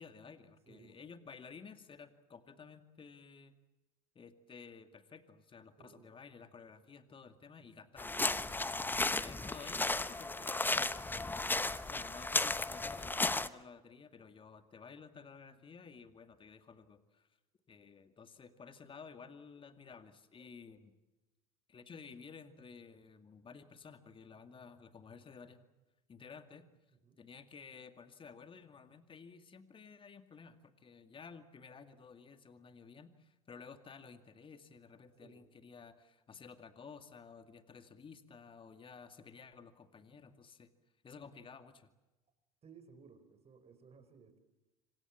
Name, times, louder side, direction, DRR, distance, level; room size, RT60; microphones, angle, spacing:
voice 1, 0.0-3.5 4.1-8.7 9.2-11.5 11.9-17.3 17.7-20.9 21.7-25.6 26.1-26.7 27.2-40.7 41.0-41.9, left 5 dB, 25° left, 9 dB, 2.3 m, -54 dB
voice 2, 0.7-1.1 5.8-6.1 27.0-27.2 35.2-35.4 42.6-44.4, right 5 dB, 35° right, 10 dB, 4.7 m, -59 dB
sound 1, 8.0-13.5, left 2 dB, 10° left, 1.0 m, -34 dB
26.5 x 26.0 x 7.4 m, 1.0 s
hypercardioid pair, 75°, 19 cm